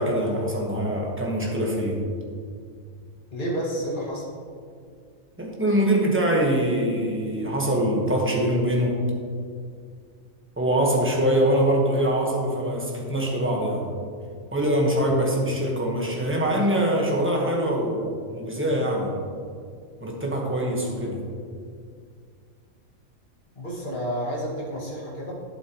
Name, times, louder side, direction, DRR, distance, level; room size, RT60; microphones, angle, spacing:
voice 1, 0.0-2.0 5.4-9.0 10.6-13.9 14.5-19.2 20.0-21.2, right 1 dB, 10° right, -2 dB, 1.2 m, -23 dB
voice 2, 3.3-4.3 23.5-25.4, equal, 40° left, -5 dB, 2.0 m, -30 dB
11.0 x 7.5 x 3.0 m, 2.2 s
omnidirectional pair, 1.4 m